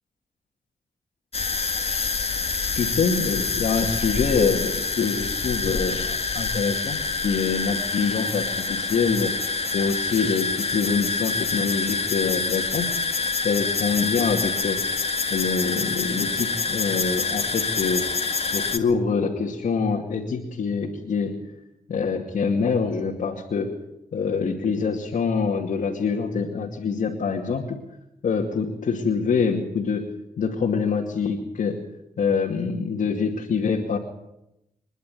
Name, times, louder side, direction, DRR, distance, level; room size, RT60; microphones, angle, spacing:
sound 1, 1.3-18.8, left 4 dB, 50° left, 1.9 m, -26 dB
voice 1, 2.8-9.3 9.7-12.9 13.4-14.8 15.3-18.0 18.5-21.3 21.9-23.7 24.1-27.8 28.2-30.0 30.4-31.7 32.2-34.0, left 5 dB, 70° left, -1 dB, 2.5 m, -25 dB
26.0 x 11.0 x 9.3 m, 0.87 s
cardioid pair, 55°, 13 cm